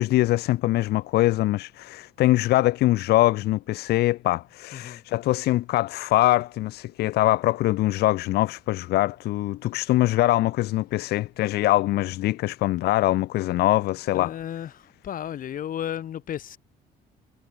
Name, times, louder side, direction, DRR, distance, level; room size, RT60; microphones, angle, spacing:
voice 1, 0.0-14.3, left 16 dB, 70° left, 0.8 m, -23 dB
voice 2, 4.7-5.0 14.1-16.6, left 10 dB, 55° left, 4.3 m, -34 dB
cardioid pair, 110°, 17 cm